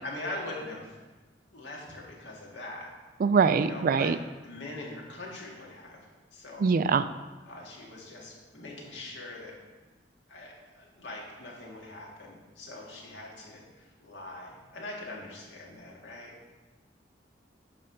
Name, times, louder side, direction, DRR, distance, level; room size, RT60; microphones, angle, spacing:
voice 1, 0.0-1.0 1.5-2.9 3.6-4.1 4.4-6.7 7.5-9.5 10.3-16.3, left 2 dB, 75° left, -3 dB, 1.9 m, -42 dB
voice 2, 3.2-4.2 6.6-7.0, right 5 dB, 50° right, 12 dB, 0.3 m, -23 dB
8.7 x 3.3 x 6.7 m, 1.2 s
head